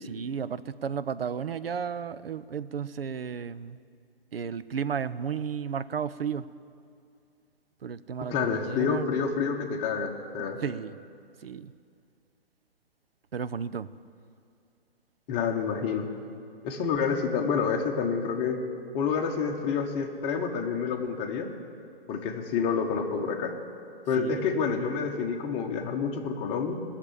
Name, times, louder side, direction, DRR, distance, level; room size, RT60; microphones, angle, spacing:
voice 1, 0.0-3.8 4.3-6.5 7.8-9.1 10.6-11.0 11.4-11.7 13.3-13.9 24.2-24.4, right 7 dB, 70° right, 15 dB, 0.6 m, -33 dB
voice 2, 8.3-10.6 15.3-16.1 16.6-18.6 18.9-21.5 22.1-23.5 24.1-26.8, left 6 dB, 20° left, 2 dB, 1.1 m, -28 dB
18.0 x 6.8 x 8.9 m, 2.4 s
figure-of-eight pair, 130°, 30 cm